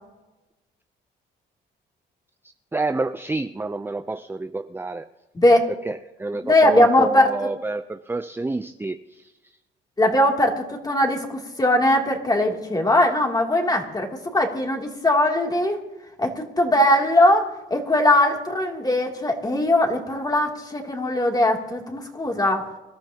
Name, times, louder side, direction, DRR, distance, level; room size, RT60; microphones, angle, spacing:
voice 1, 2.7-5.1 5.8-9.3, right 2 dB, 10° right, 9 dB, 0.5 m, -28 dB
voice 2, 5.3-5.7 6.4-7.3 10.0-15.8 16.2-22.7, left 1 dB, 20° left, 1 dB, 2.9 m, -20 dB
26.5 x 13.0 x 2.9 m, 1.1 s
cardioid pair, 90°, 20 cm